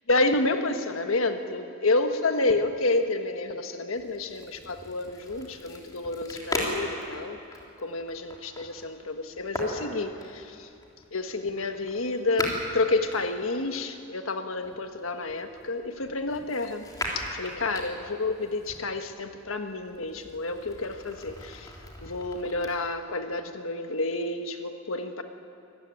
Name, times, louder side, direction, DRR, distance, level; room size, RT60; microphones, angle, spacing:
voice 1, 0.1-7.4 7.8-10.7 11.1-16.8 17.1-21.7 22.0-25.2, left 2 dB, 85° left, 7 dB, 1.4 m, -29 dB
sound 1, 3.9-13.9 14.6-18.8 19.4-22.7, left 1 dB, 20° left, 3.5 m, -39 dB
25.0 x 15.0 x 9.2 m, 2.6 s
head